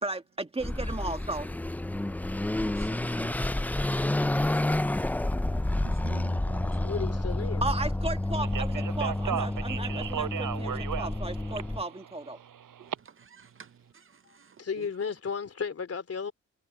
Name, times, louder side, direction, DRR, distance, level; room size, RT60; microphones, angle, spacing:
voice 1, 0.0-1.5 7.6-12.4, right 2 dB, 20° right, 1.7 m, -35 dB
Car passing by / Accelerating revving vroom, 0.6-11.8, left 1 dB, 5° left, 0.4 m, -29 dB
voice 2, 2.6-3.6 5.8-6.9 13.2-13.7, right 7 dB, 40° right, 0.7 m, -47 dB
voice 3, 6.8-7.6 14.6-16.3, left 6 dB, 50° left, 3.3 m, -34 dB
Speech, 8.4-13.0, right 9 dB, 85° right, 5.1 m, -35 dB
wide cardioid pair, 110°, 31 cm